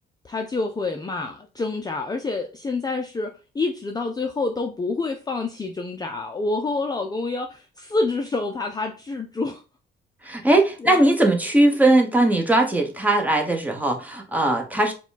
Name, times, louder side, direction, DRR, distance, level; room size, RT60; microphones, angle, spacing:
voice 1, 0.2-9.6 10.3-10.4 10.8-11.0, left 3 dB, 20° left, 0.5 m, -27 dB
voice 2, 10.3-14.9, right 1 dB, 10° right, 1.1 m, -19 dB
4.8 x 2.3 x 3.9 m
cardioid pair, 90°, 20 cm